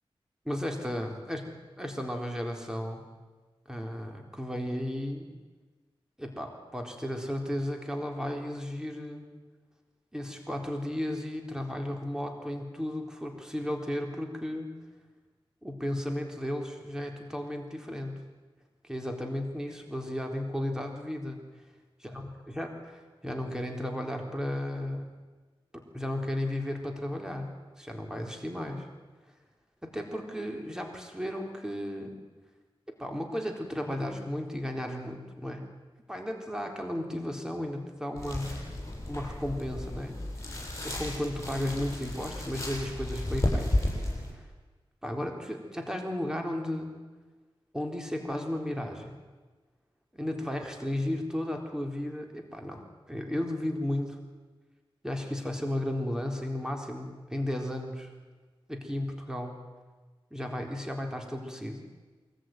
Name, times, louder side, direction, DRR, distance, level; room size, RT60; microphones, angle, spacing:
voice 1, 0.5-1.4 1.8-3.0 3.7-5.3 6.2-9.3 10.1-14.7 15.6-18.1 18.8-21.4 22.1-22.2 22.5-25.1 25.7-28.9 29.8-32.2 33.0-35.7 36.1-38.6 39.1-40.2 40.8-43.9 44.3-44.4 45.0-46.9 47.7-49.2 50.1-54.2 55.0-58.1 58.7-59.6 60.3-61.8, left 1 dB, 5° right, 2 dB, 4.0 m, -34 dB
sound 1, 38.2-44.3, left 1 dB, 30° left, 7.8 m, -33 dB
23.0 x 14.5 x 9.3 m, 1.3 s
cardioid pair, 50°, 10 cm